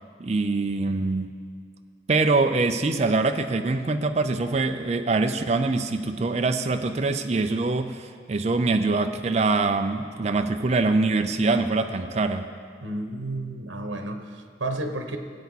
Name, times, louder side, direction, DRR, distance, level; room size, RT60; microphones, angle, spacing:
voice 1, 0.2-1.3 2.1-12.5, right 3 dB, 35° right, 6 dB, 0.4 m, -24 dB
voice 2, 12.8-15.2, right 2 dB, 75° right, 5 dB, 1.0 m, -32 dB
18.5 x 8.3 x 4.1 m, 2.1 s
head